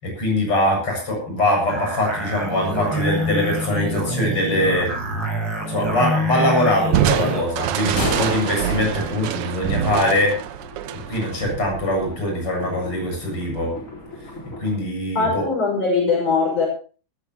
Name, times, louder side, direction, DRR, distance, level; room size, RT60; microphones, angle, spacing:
voice 1, 0.0-4.9 5.7-10.3 11.1-13.7 14.6-15.4, left 1 dB, 45° left, 1 dB, 8.2 m, -22 dB
sound 1, 1.7-7.5, equal, 45° right, 6.5 m, -26 dB
Crushing, 6.9-12.3, right 11 dB, 75° right, 1.3 m, -25 dB
Thunder, 7.6-14.8, left 1 dB, 25° left, 4.4 m, -34 dB
voice 2, 15.2-16.7, left 4 dB, 85° left, 0 dB, 7.5 m, -21 dB
20.0 x 14.5 x 3.0 m, 0.38 s
omnidirectional pair, 3.4 m